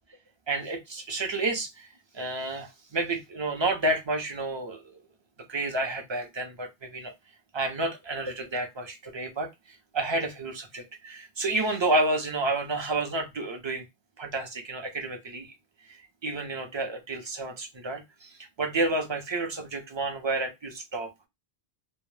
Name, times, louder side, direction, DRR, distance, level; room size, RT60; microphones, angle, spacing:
voice 1, 0.5-1.9 2.1-5.0 5.5-7.1 7.5-13.8 14.2-15.5 15.9-21.1, right 2 dB, 35° right, 0.5 m, -30 dB
2.2 x 2.1 x 3.1 m
omnidirectional pair, 1.0 m